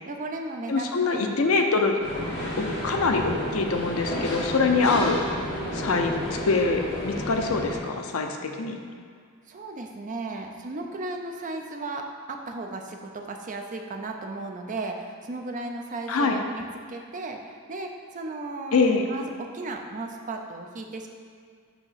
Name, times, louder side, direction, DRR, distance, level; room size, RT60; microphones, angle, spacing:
voice 1, 0.1-1.3 4.9-5.1 9.5-21.1, right 2 dB, 35° right, 3 dB, 0.5 m, -35 dB
voice 2, 0.7-2.0 2.6-5.2 5.7-6.2 6.4-8.8 16.1-16.4 18.7-19.1, left 4 dB, 70° left, 4 dB, 0.6 m, -24 dB
sound 1, 2.0-7.8, equal, 50° left, 1.6 m, -31 dB
7.0 x 3.0 x 5.6 m, 2.1 s
head